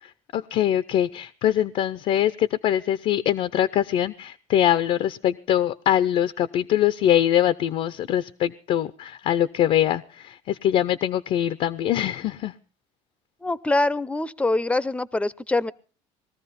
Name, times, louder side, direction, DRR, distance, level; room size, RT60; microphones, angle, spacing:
voice 1, 0.0-12.5, left 11 dB, 55° left, 13 dB, 0.7 m, -23 dB
voice 2, 13.4-15.7, left 2 dB, 10° left, 19 dB, 0.7 m, -24 dB
20.5 x 14.0 x 4.2 m, 0.37 s
cardioid pair, 120°, 13 cm